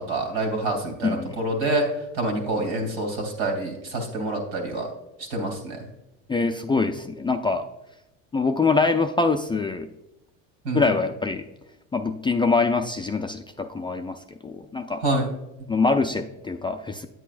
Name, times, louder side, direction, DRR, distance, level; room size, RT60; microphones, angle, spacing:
voice 1, 0.0-1.9 2.1-4.9 5.3-5.8 10.6-10.9 15.0-15.3, right 2 dB, 80° right, 1 dB, 2.8 m, -26 dB
voice 2, 1.0-1.3 6.3-7.7 8.3-9.9 10.7-11.4 11.9-15.0 15.7-17.1, left 4 dB, 15° left, 5 dB, 0.3 m, -24 dB
9.2 x 8.5 x 2.5 m, 0.93 s
supercardioid pair, 100°, 37 cm